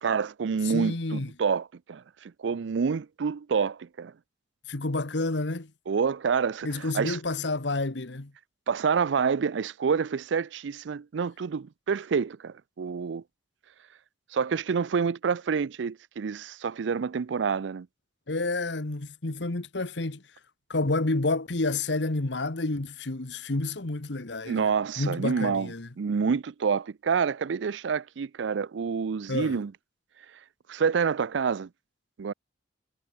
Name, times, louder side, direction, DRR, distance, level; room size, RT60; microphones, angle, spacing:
voice 1, 0.0-4.1 5.9-6.7 6.9-7.2 8.7-13.2 14.3-17.9 24.4-25.7 26.0-29.7 30.7-31.7 32.2-32.3, right 6 dB, 90° right, 0.4 m, -28 dB
voice 2, 0.6-1.3 4.7-5.7 6.6-8.3 18.3-20.2 20.7-25.9 29.3-29.6, left 2 dB, 80° left, 1.4 m, -29 dB
head